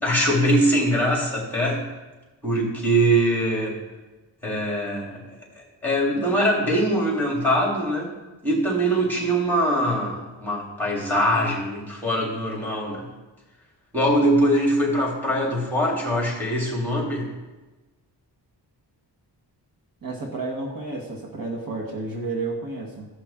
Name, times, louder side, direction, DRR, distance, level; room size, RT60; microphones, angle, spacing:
voice 1, 0.0-1.9 2.4-3.8 4.4-8.1 8.4-13.1 13.9-17.3, right 1 dB, 5° left, -4 dB, 3.1 m, -22 dB
voice 2, 20.0-23.1, right 3 dB, 50° right, -1 dB, 1.6 m, -31 dB
16.5 x 5.8 x 3.7 m, 1.1 s
wide cardioid pair, 105°, 43 cm